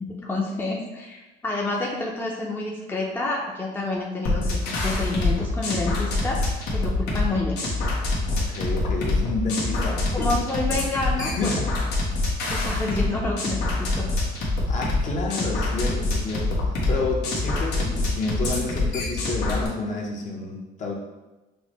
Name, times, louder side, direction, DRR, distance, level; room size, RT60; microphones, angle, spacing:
voice 1, 0.0-7.6 10.1-11.5 12.5-14.1, left 2 dB, 10° left, -2 dB, 0.6 m, -29 dB
sound 1, 4.3-19.7, left 2 dB, 80° left, 1.2 m, -25 dB
voice 2, 8.3-10.4 10.7-10.8 11.2-11.7 14.7-16.6 16.9-20.9, left 3 dB, 45° left, -1 dB, 0.9 m, -30 dB
6.1 x 2.1 x 3.0 m, 1.1 s
cardioid pair, 110°, 17 cm